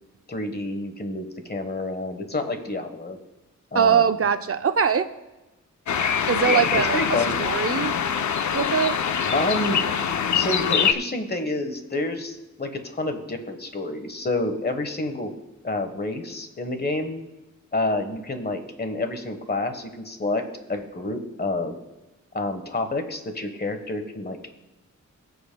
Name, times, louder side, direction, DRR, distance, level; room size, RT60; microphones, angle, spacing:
voice 1, 0.3-3.2 3.7-4.0 6.4-7.4 9.3-9.8 10.3-15.3 15.6-17.2 17.7-20.4 20.7-21.7 22.3-24.4, left 2 dB, 35° left, 7 dB, 1.3 m, -28 dB
voice 2, 3.7-5.1 6.3-7.0 7.4-8.0 8.5-9.0, right 7 dB, 50° right, 10 dB, 0.5 m, -21 dB
sound 1, 5.9-10.9, left 7 dB, 70° left, 0.6 m, -24 dB
20.0 x 7.9 x 2.3 m, 1.0 s
wide cardioid pair, 105°, 30 cm